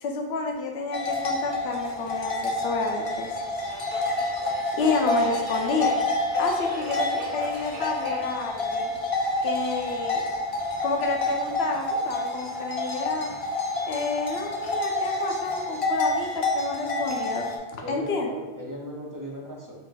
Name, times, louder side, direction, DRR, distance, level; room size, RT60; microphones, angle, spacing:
voice 1, 0.0-3.3 4.7-5.9 6.4-8.9 9.4-10.2 10.8-13.3 13.9-17.5 17.7-18.3, left 3 dB, 75° left, 3 dB, 0.8 m, -30 dB
sound 1, 0.9-17.6, left 2 dB, 55° left, 0.3 m, -28 dB
Subway metro underground, 1.0-11.5, right 1 dB, 85° right, 1.0 m, -44 dB
voice 2, 17.8-19.7, equal, 25° right, -3 dB, 0.4 m, -37 dB
3.9 x 2.5 x 3.7 m, 1.2 s
omnidirectional pair, 1.1 m